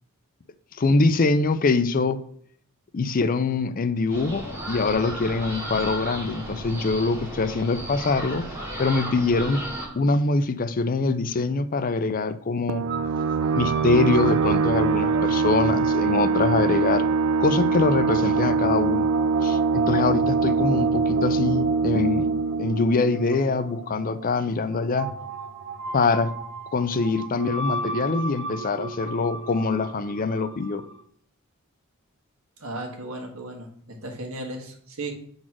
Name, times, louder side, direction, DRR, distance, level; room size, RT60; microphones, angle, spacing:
voice 1, 0.8-2.2 2.9-8.5 8.8-9.6 9.9-12.9 13.6-17.1 17.4-19.1 19.4-22.3 22.6-25.1 25.9-26.3 26.7-30.8, left 3 dB, 40° left, 0.5 m, -24 dB
sound 1, 4.1-9.9, right 1 dB, 15° right, 2.7 m, -34 dB
sound 2, 12.7-24.0, right 4 dB, 90° right, 0.3 m, -23 dB
sound 3, 12.9-31.0, right 4 dB, 55° right, 0.8 m, -35 dB
voice 2, 32.6-35.1, right 2 dB, 70° right, 1.6 m, -35 dB
7.6 x 4.0 x 6.1 m
head